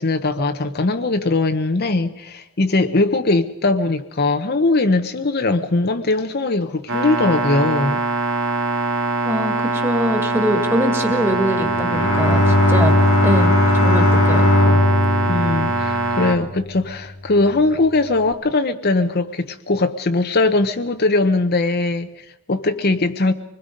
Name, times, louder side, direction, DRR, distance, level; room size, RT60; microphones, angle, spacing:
voice 1, 0.0-8.0 15.3-23.3, left 2 dB, 45° left, 0.9 m, -20 dB
sound 1, 6.9-16.4, right 3 dB, 60° right, 2.1 m, -22 dB
voice 2, 9.2-14.8, equal, 10° right, 2.1 m, -23 dB
Bowed string instrument, 11.6-16.8, left 1 dB, 70° left, 2.1 m, -18 dB
25.0 x 20.5 x 5.3 m
head